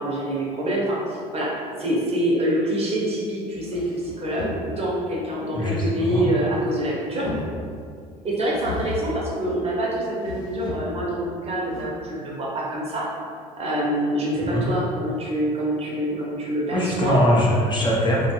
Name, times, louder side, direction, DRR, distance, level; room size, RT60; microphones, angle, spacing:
voice 1, 0.0-7.3 8.2-13.1 13.6-17.2, right 1 dB, 35° right, -4 dB, 0.8 m, -26 dB
sound 1, 3.5-5.0 6.0-6.8 7.1-7.9 8.5-9.2 10.2-11.1 11.7-11.8, left 3 dB, 80° left, 0.7 m, -34 dB
voice 2, 5.5-6.3 14.5-14.6 16.7-18.3, equal, 25° left, -4 dB, 0.6 m, -21 dB
2.5 x 2.2 x 2.9 m, 2.2 s
hypercardioid pair, 70°, 18 cm